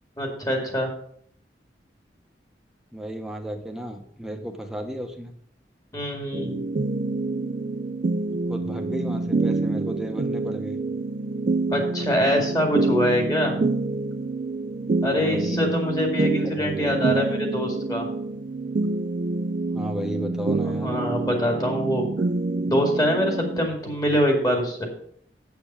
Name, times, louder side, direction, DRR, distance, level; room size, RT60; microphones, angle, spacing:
voice 1, 0.2-0.9 5.9-6.6 11.7-13.6 15.0-18.1 20.4-22.1 22.5-24.8, equal, 20° left, 2 dB, 2.1 m, -24 dB
voice 2, 2.9-5.3 8.3-10.8 15.1-15.7 16.2-17.2 19.7-20.9, equal, 5° right, 3 dB, 1.0 m, -34 dB
sound 1, 6.3-23.7, right 3 dB, 45° right, 0.4 m, -27 dB
7.9 x 7.0 x 5.7 m, 0.63 s
head